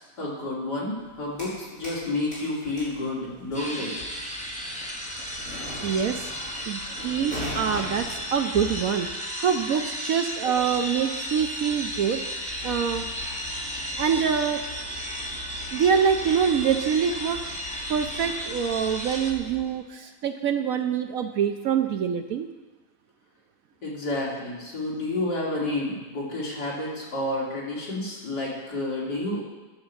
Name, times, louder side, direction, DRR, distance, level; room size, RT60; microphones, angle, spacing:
voice 1, 0.2-3.9 23.8-29.4, left 2 dB, 75° left, -5 dB, 3.4 m, -30 dB
sound 1, 1.0-2.0 2.3-19.8, left 2 dB, 55° left, 4.9 m, -42 dB
sound 2, 3.5-19.3, equal, 5° left, 1.1 m, -34 dB
voice 2, 5.8-6.3 6.7-9.1 9.4-13.1 14.0-14.6 15.7-17.4 17.9-22.5, right 7 dB, 65° right, 7 dB, 0.9 m, -25 dB
11.0 x 6.8 x 7.1 m, 1.2 s
omnidirectional pair, 1.8 m